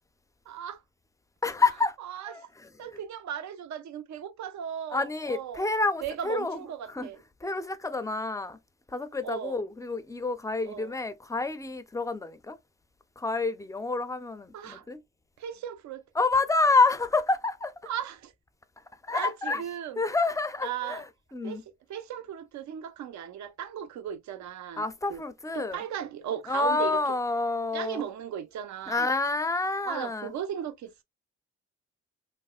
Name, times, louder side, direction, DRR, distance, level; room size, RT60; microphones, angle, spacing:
voice 1, 0.5-0.8 2.1-2.3 2.8-5.6 6.0-7.2 9.2-9.6 10.7-10.9 14.5-14.8 15.4-16.0 17.9-18.3 19.1-20.0 20.6-21.0 21.4-21.6 21.9-24.8 25.1-25.2 25.6-26.9 27.7-29.1 29.9-31.0, right 9 dB, 65° right, 0.6 m, -36 dB
voice 2, 1.4-2.0 2.3-3.0 4.9-7.1 7.4-8.6 8.9-12.6 13.2-15.0 16.1-17.7 19.0-19.6 20.0-21.6 24.8-25.8 26.5-28.1 28.9-30.3, left 3 dB, 10° left, 0.4 m, -28 dB
3.3 x 2.1 x 2.3 m
cardioid pair, 90°, 30 cm